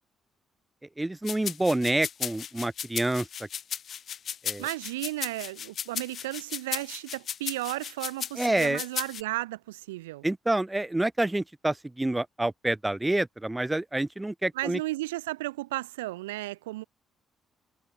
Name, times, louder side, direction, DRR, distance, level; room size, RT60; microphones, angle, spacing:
voice 1, 1.0-3.3 4.4-4.7 8.4-8.8 10.2-14.8, right 1 dB, 15° right, 3.8 m, -27 dB
sound 1, 1.3-9.2, left 8 dB, 55° left, 4.4 m, -35 dB
voice 2, 4.6-10.3 14.5-16.8, right 18 dB, 80° right, 5.2 m, -34 dB
figure-of-eight pair, 45°, 0 cm